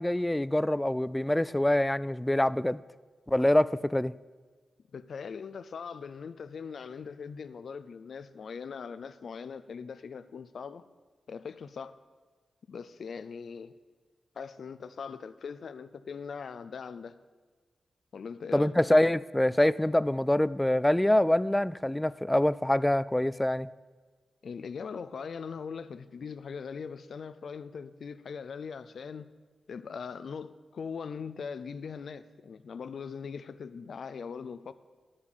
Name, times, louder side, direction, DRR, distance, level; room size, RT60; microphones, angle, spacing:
voice 1, 0.0-2.8 3.3-4.1 18.5-23.7, left 1 dB, 10° left, 0.4 m, -25 dB
voice 2, 4.9-10.8 11.3-12.0 12.7-13.7 14.4-17.2 18.1-18.7 24.4-29.3 29.7-34.7, left 6 dB, 70° left, 0.5 m, -41 dB
11.5 x 7.4 x 6.8 m
cardioid pair, 55°, 0 cm